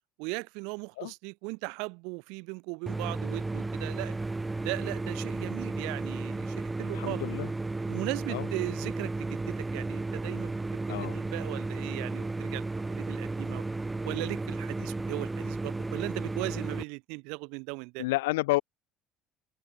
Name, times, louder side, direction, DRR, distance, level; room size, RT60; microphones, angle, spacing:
voice 1, 0.2-4.2 4.6-7.2 7.8-12.6 12.9-13.6 14.0-18.0, right 31 dB, 75° right, 5.4 m, -38 dB
sound 1, 2.9-16.8, right 2 dB, 15° right, 4.0 m, -34 dB
voice 2, 6.9-7.5 8.3-8.5 10.9-11.2 18.0-18.6, left 20 dB, 85° left, 1.6 m, -30 dB
open air
hypercardioid pair, 75°, 0 cm